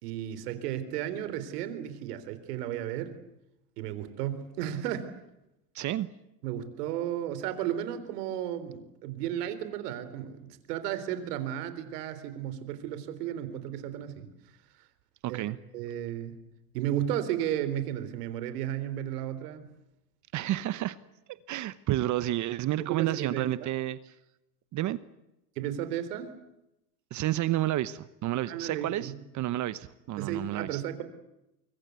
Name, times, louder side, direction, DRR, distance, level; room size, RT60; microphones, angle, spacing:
voice 1, 0.0-3.1 3.8-5.1 6.4-14.3 15.3-15.4 15.7-16.4 16.7-19.7 22.8-23.7 25.6-26.4 28.5-29.2 30.2-31.0, right 11 dB, 70° right, 12 dB, 3.9 m, -34 dB
voice 2, 5.7-6.1 15.2-15.6 20.3-21.0 21.5-24.1 24.7-25.0 27.1-30.8, right 14 dB, 35° right, 16 dB, 1.0 m, -30 dB
24.5 x 23.5 x 8.2 m, 0.90 s
hypercardioid pair, 110°, 49 cm